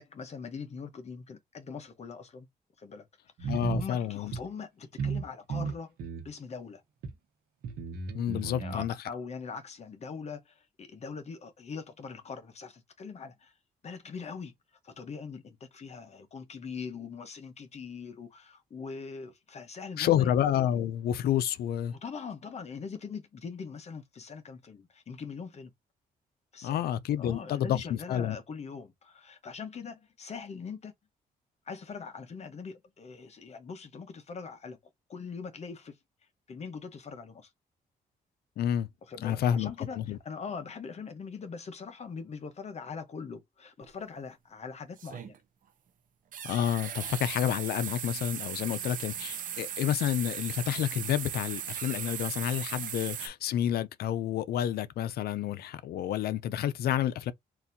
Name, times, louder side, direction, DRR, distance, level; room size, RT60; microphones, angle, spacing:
voice 1, 0.0-2.5 2.8-3.1 3.4-5.9 6.2-6.8 8.4-13.5 13.8-14.5 14.8-20.3 21.9-25.7 26.5-26.9 27.2-30.9 31.7-34.8 35.1-36.0 36.5-37.5 39.1-45.3, left 5 dB, 45° left, 0.8 m, -42 dB
sound 1, 3.4-3.9 4.3-4.4 5.0-5.2 5.5-6.3 7.0-7.1 7.6-8.9, right 5 dB, 80° right, 1.0 m, -34 dB
voice 2, 3.5-4.3 8.1-8.9 20.0-22.0 26.6-28.4 38.6-38.9 39.2-40.2 46.4-57.3, left 10 dB, 75° left, 0.5 m, -29 dB
sound 2, 43.8-43.9 45.0-45.4 46.3-53.3, right 9 dB, 55° right, 0.6 m, -37 dB
3.9 x 2.6 x 2.6 m
cardioid pair, 100°, 16 cm